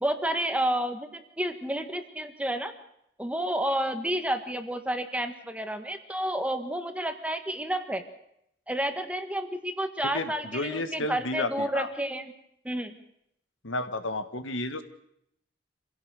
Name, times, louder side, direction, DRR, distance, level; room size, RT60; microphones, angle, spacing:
voice 1, 0.0-2.7 3.2-8.0 8.7-12.3 12.6-13.0, right 1 dB, 5° right, 7 dB, 1.5 m, -30 dB
voice 2, 10.1-11.9 13.6-14.8, left 2 dB, 85° left, 9 dB, 1.7 m, -32 dB
26.0 x 16.5 x 6.5 m, 0.76 s
head